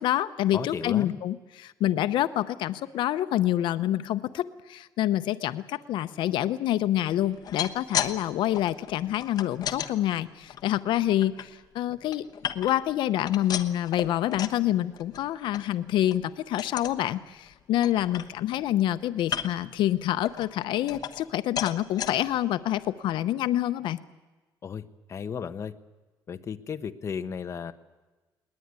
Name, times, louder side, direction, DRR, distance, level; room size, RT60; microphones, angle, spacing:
voice 1, 0.0-12.2 12.5-24.0, left 13 dB, 80° left, 13 dB, 0.8 m, -27 dB
voice 2, 0.5-1.2 24.6-25.7 26.3-27.7, left 7 dB, 35° left, 9 dB, 1.0 m, -34 dB
sound 1, 7.3-8.1 8.4-9.9 10.4-11.4 11.9-12.9 13.2-14.6 15.0-15.2 15.5-15.6 16.0-16.2 16.6-17.0 17.5-17.6 17.8-18.6 19.2-19.7 20.2-21.3 21.6-22.1 22.7-22.8 23.1-23.2, left 9 dB, 55° left, 1.2 m, -34 dB
20.0 x 19.5 x 9.6 m, 1.2 s
cardioid pair, 150°, 8 cm